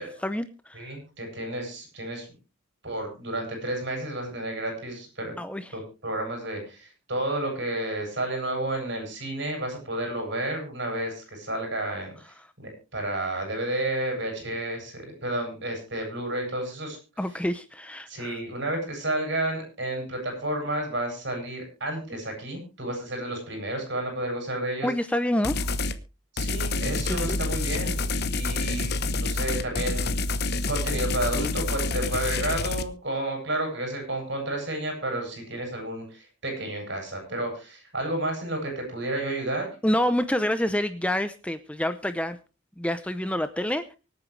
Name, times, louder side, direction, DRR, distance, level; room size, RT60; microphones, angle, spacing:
voice 1, 0.0-0.9 5.4-5.7 17.2-18.4 24.8-25.7 27.1-27.4 39.8-42.4 42.8-44.0, left 1 dB, 5° left, 10 dB, 0.7 m, -27 dB
voice 2, 0.7-2.3 2.8-5.3 5.7-12.1 12.6-17.0 18.1-24.9 26.3-30.2 30.7-39.7, right 1 dB, 60° right, 3 dB, 7.8 m, -31 dB
sound 1, 25.4-26.0 26.4-32.8, left 3 dB, 50° left, 1.1 m, -28 dB
24.5 x 9.0 x 3.3 m, 0.31 s
head